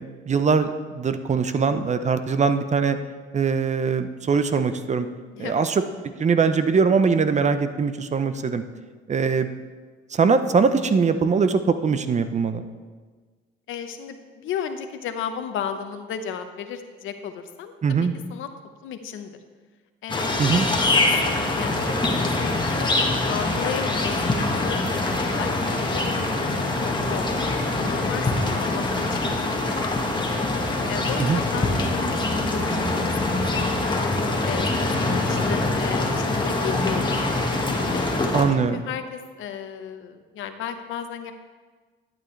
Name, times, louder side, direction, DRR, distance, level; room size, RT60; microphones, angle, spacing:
voice 1, 0.0-3.0 3.3-5.1 5.4-5.8 6.2-8.6 9.1-9.5 10.1-12.7 17.8-18.1 20.4-20.6 31.2-31.4 38.3-38.8, right 5 dB, 35° right, 10 dB, 0.6 m, -22 dB
voice 2, 5.3-5.6 13.7-18.5 18.8-19.4 20.0-21.8 22.1-22.9 23.3-26.5 26.7-27.3 27.8-30.2 30.9-34.0 34.4-37.2 37.9-41.3, left 8 dB, 80° left, 8 dB, 0.8 m, -34 dB
sound 1, 20.1-38.4, left 2 dB, 25° left, 1.4 m, -24 dB
11.5 x 8.9 x 3.2 m, 1.4 s
cardioid pair, 90°, 20 cm